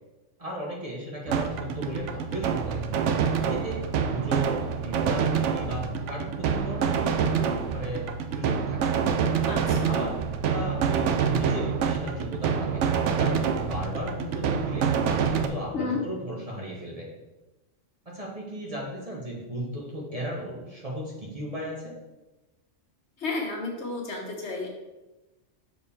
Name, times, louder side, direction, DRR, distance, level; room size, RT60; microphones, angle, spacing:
voice 1, 0.4-2.8 3.3-4.5 4.8-9.0 9.9-10.2 10.5-17.1 18.0-21.9, equal, 30° right, -3 dB, 1.3 m, -36 dB
sound 1, 1.3-15.5, right 7 dB, 75° right, 0.9 m, -26 dB
voice 2, 9.5-9.9 15.7-16.0 23.2-24.7, left 3 dB, 65° left, 0 dB, 1.4 m, -32 dB
6.3 x 4.9 x 3.6 m, 1.0 s
omnidirectional pair, 1.3 m